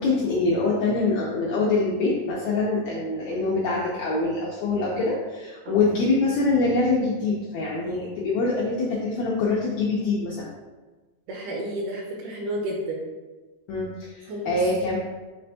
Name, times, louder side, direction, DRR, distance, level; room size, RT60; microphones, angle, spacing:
voice 1, 0.0-10.5 13.7-15.0, left 3 dB, 80° left, -5 dB, 1.6 m, -24 dB
voice 2, 11.3-13.0 14.3-14.6, right 1 dB, 75° right, 0 dB, 1.9 m, -31 dB
6.0 x 3.3 x 2.7 m, 1.3 s
omnidirectional pair, 3.9 m